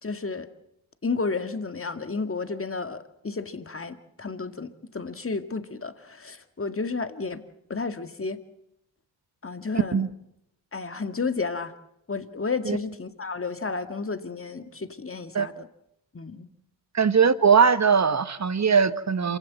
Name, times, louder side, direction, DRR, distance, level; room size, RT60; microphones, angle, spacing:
voice 1, 0.0-0.5 1.0-7.4 7.7-8.4 9.4-10.1 10.7-11.7 12.1-15.7 16.1-16.5, left 4 dB, 30° left, 9 dB, 2.0 m, -32 dB
voice 2, 16.9-19.4, right 6 dB, 35° right, 14 dB, 1.3 m, -20 dB
27.0 x 15.5 x 7.7 m, 0.81 s
supercardioid pair, 45°, 47 cm